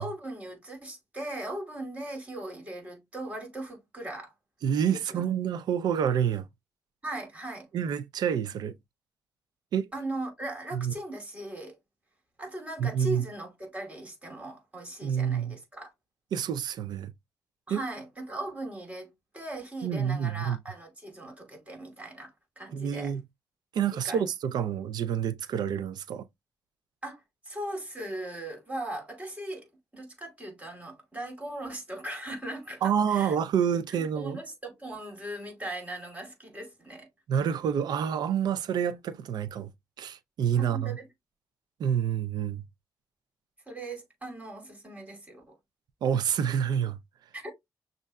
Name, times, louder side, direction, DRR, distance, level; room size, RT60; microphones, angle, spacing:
voice 1, 0.0-4.3 4.9-5.2 7.0-7.7 9.9-11.8 12.4-15.9 17.7-23.1 23.9-24.3 27.0-29.7 29.9-33.3 33.9-37.1 40.6-41.1 43.7-45.6 47.3-47.5, right 1 dB, 20° right, 2.5 m, -39 dB
voice 2, 4.6-6.5 7.7-8.7 9.7-9.9 10.7-10.9 12.8-13.2 15.0-15.5 16.3-17.1 17.7-17.8 19.8-20.6 22.7-23.2 23.7-26.2 32.8-34.4 37.3-39.7 40.0-41.0 41.8-42.6 46.0-47.0, right 8 dB, 85° right, 0.5 m, -28 dB
6.4 x 2.5 x 2.3 m
cardioid pair, 85°, 7 cm